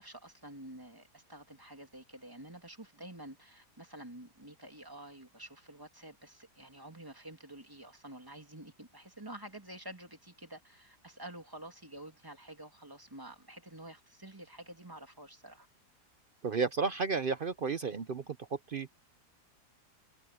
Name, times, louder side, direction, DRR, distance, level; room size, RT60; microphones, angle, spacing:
voice 1, 0.0-15.7, right 1 dB, 10° right, 2.6 m, -49 dB
voice 2, 16.4-18.9, right 5 dB, 60° right, 0.5 m, -33 dB
omnidirectional pair, 1.8 m